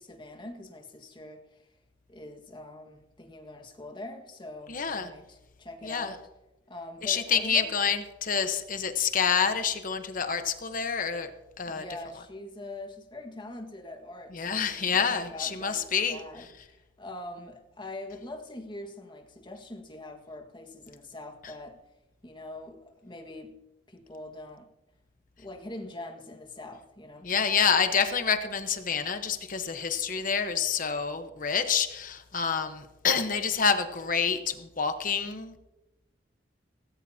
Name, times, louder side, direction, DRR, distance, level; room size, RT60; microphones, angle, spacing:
voice 1, 0.0-1.7 2.1-6.2 6.7-7.8 11.6-21.8 22.2-23.6 23.9-24.7 25.4-27.3, left 2 dB, 25° left, 1.7 m, -43 dB
voice 2, 4.7-5.1 5.8-6.1 7.0-11.3 11.6-11.9 14.3-16.2 27.2-35.6, left 6 dB, 45° left, 1.1 m, -27 dB
18.0 x 16.0 x 2.8 m
head